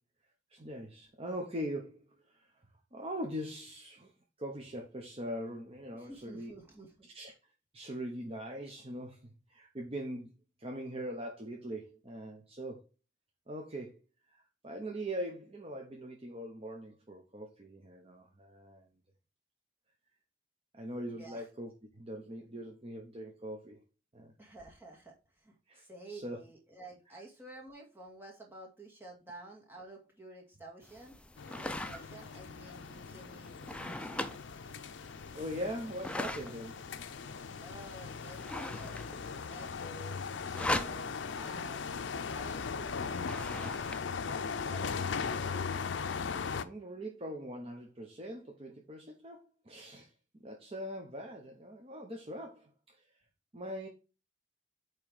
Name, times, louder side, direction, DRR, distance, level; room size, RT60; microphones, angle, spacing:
voice 1, 0.5-2.5 2.9-4.1 4.4-6.5 7.1-7.3 7.7-12.9 13.5-14.0 14.3-18.9 20.7-23.8 24.1-24.3 25.7-26.4 35.0-36.9 46.6-50.1 50.4-53.1 53.5-53.9, equal, 30° right, 0.9 m, -42 dB
voice 2, 5.9-7.1 21.1-21.5 24.4-31.2 31.7-34.4 37.6-38.5 38.7-45.7, right 2 dB, 10° right, 1.9 m, -52 dB
sound 1, 30.8-44.0, left 1 dB, 5° left, 0.4 m, -42 dB
sound 2, 31.4-46.6, left 5 dB, 70° left, 0.5 m, -39 dB
8.7 x 3.2 x 4.8 m
head